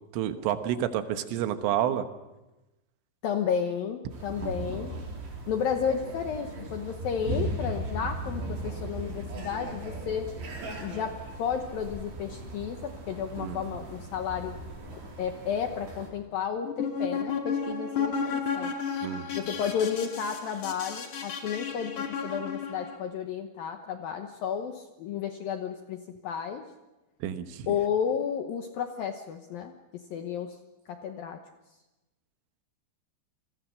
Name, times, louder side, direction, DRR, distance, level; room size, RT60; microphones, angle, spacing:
voice 1, 0.1-2.1 4.4-4.8 13.4-13.6 19.0-19.5 27.2-27.7, right 11 dB, 85° right, 9 dB, 3.8 m, -30 dB
voice 2, 3.2-4.9 5.5-10.3 10.8-14.6 15.2-18.7 19.3-26.6 27.7-30.6 30.9-31.4, left 7 dB, 75° left, 5 dB, 2.1 m, -32 dB
sound 1, 4.1-16.1, right 2 dB, 60° right, 6.4 m, -38 dB
sound 2, 16.6-23.0, left 6 dB, 45° left, 3.2 m, -33 dB
29.0 x 21.5 x 6.4 m, 1.0 s
omnidirectional pair, 5.6 m